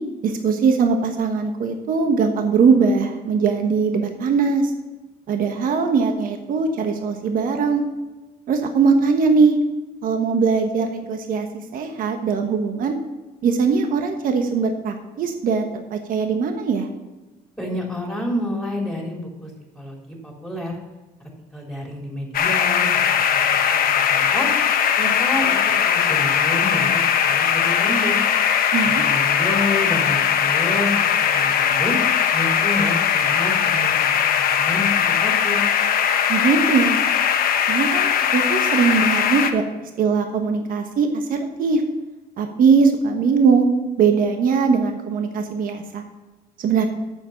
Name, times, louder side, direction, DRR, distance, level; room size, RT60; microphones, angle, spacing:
voice 1, 0.2-4.7 5.3-7.8 8.5-9.6 10.0-13.0 13.4-16.9 28.7-29.0 36.3-37.0 37.7-39.6 40.0-41.8 42.4-43.7 44.0-46.0 46.6-46.9, right 5 dB, 55° right, 5 dB, 1.2 m, -20 dB
voice 2, 17.6-19.5 19.8-20.0 20.2-20.8 21.5-24.5 25.0-25.6 25.8-28.2 28.8-30.9 31.2-32.0 32.3-35.6, left 1 dB, ahead, -1 dB, 3.5 m, -29 dB
sound 1, 22.3-39.5, left 8 dB, 60° left, 1.0 m, -20 dB
8.8 x 7.4 x 5.7 m, 1.2 s
cardioid pair, 110°, 17 cm